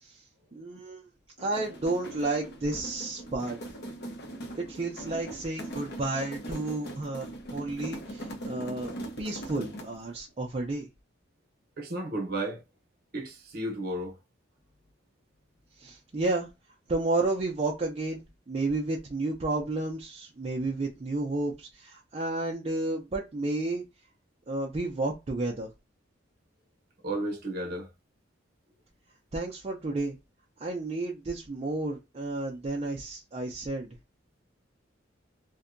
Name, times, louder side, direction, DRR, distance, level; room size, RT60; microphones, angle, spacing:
voice 1, 0.5-1.1 1.4-3.6 4.6-10.9 15.8-16.5 16.9-23.8 24.5-25.7 29.3-30.2 30.6-33.9, right 2 dB, 30° right, 0.4 m, -31 dB
sound 1, 1.4-10.1, right 1 dB, 55° left, 0.7 m, -41 dB
voice 2, 11.8-12.6 13.1-14.1 27.0-27.9, right 1 dB, 50° right, 0.8 m, -33 dB
2.6 x 2.1 x 2.5 m
head